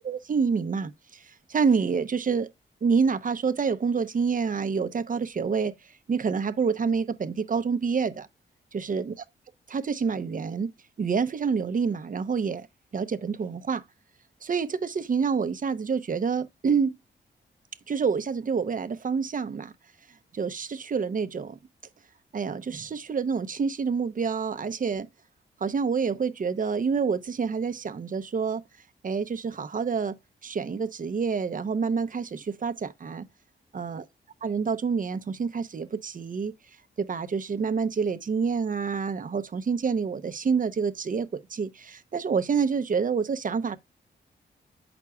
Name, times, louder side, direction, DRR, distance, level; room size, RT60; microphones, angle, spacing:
voice 1, 0.0-2.5 2.8-5.7 6.1-8.3 8.7-9.1 9.7-10.7 11.0-12.7 12.9-13.8 14.4-17.0 17.9-19.7 20.3-21.6 22.3-25.1 25.6-28.6 29.0-30.2 30.4-33.3 33.7-34.0 34.4-36.5 37.0-43.8, right 5 dB, 45° right, 0.8 m, -27 dB
8.2 x 6.0 x 2.3 m
cardioid pair, 70°, 18 cm